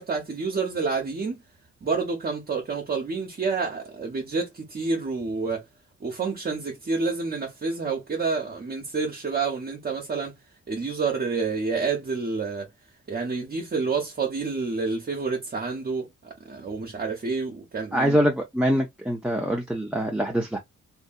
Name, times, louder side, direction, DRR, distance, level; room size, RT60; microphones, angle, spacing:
voice 1, 0.0-1.3 1.8-5.6 6.0-10.3 10.7-12.7 13.1-18.2, right 4 dB, 30° right, 0.8 m, -28 dB
voice 2, 17.9-20.6, equal, 5° right, 0.6 m, -24 dB
2.6 x 2.6 x 2.3 m
supercardioid pair, 65°, 30 cm